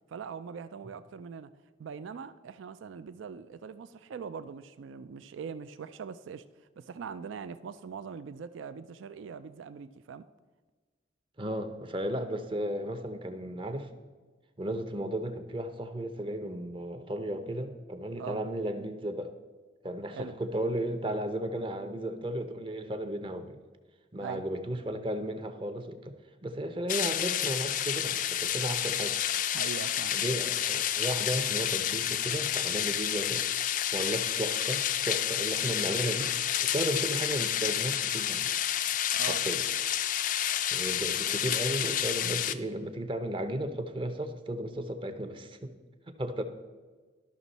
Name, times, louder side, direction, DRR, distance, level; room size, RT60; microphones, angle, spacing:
voice 1, 0.1-1.5 1.8-6.4 6.8-10.3 18.2-18.4 20.1-20.4 24.2-24.4 29.5-30.2 39.1-39.4, right 6 dB, 80° right, 0.3 m, -42 dB
voice 2, 11.4-13.9 14.6-19.3 19.8-23.6 24.1-26.2 26.4-29.2 30.1-33.5 33.9-38.5 39.3-39.7 40.7-45.7 46.2-46.4, right 1 dB, 25° right, 0.6 m, -34 dB
sound 1, 26.9-42.5, left 10 dB, 45° left, 0.3 m, -30 dB
12.5 x 6.0 x 4.1 m
head